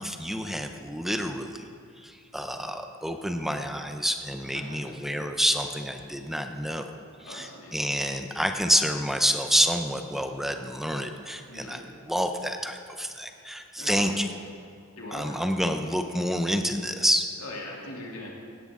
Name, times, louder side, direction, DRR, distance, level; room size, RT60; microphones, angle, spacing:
voice 1, 0.0-1.7 2.0-14.3 15.1-17.3, equal, ahead, 6 dB, 0.5 m, -28 dB
voice 2, 7.2-7.8 11.5-11.8 13.8-14.3 15.0-15.4 17.4-18.3, left 1 dB, 65° left, -3 dB, 2.7 m, -40 dB
17.0 x 11.0 x 3.7 m, 2.5 s
head